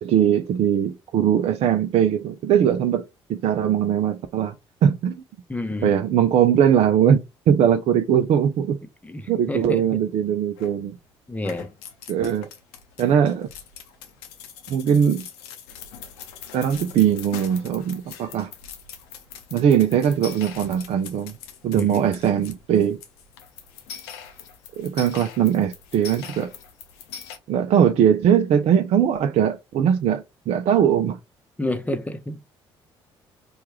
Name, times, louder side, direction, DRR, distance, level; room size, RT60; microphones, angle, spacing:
voice 1, 0.0-4.5 4.8-5.2 5.8-8.8 9.3-11.0 12.1-12.5 13.0-13.5 14.7-15.3 16.5-18.5 19.5-21.3 21.6-23.0 24.8-26.5 27.5-31.2, right 9 dB, 50° right, 0.4 m, -20 dB
voice 2, 5.5-5.9 9.0-10.0 11.3-11.7 21.7-22.0 31.6-32.4, left 2 dB, 10° left, 0.7 m, -29 dB
sound 1, 10.6-11.0 11.4-27.4, left 8 dB, 75° left, 0.6 m, -42 dB
4.4 x 2.3 x 3.1 m
figure-of-eight pair, 50°, 14 cm